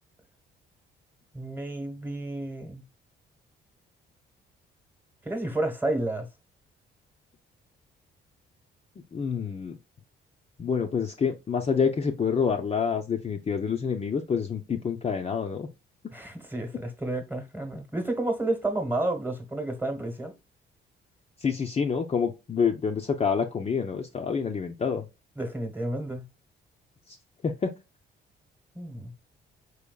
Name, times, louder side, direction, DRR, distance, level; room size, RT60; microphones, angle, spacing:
voice 1, 1.3-2.8 5.2-6.3 16.1-20.3 25.4-26.3 28.7-29.1, right 2 dB, 10° right, 1.1 m, -31 dB
voice 2, 9.1-9.8 10.6-15.7 21.4-25.1 27.4-27.7, left 6 dB, 30° left, 0.5 m, -27 dB
4.6 x 3.5 x 2.2 m
cardioid pair, 90°, 20 cm